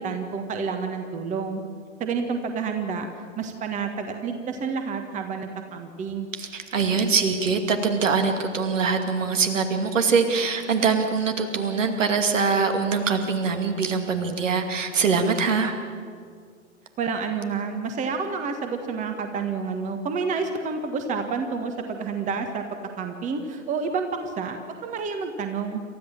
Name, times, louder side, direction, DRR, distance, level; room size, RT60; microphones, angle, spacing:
voice 1, 0.0-1.6 2.0-3.1 3.4-6.3 17.0-22.6 23.0-25.8, right 5 dB, 20° right, 6 dB, 1.6 m, -29 dB
voice 2, 6.3-15.7, right 5 dB, 65° right, 5 dB, 2.5 m, -23 dB
28.0 x 13.5 x 7.4 m, 2.1 s
figure-of-eight pair, 110°, 41 cm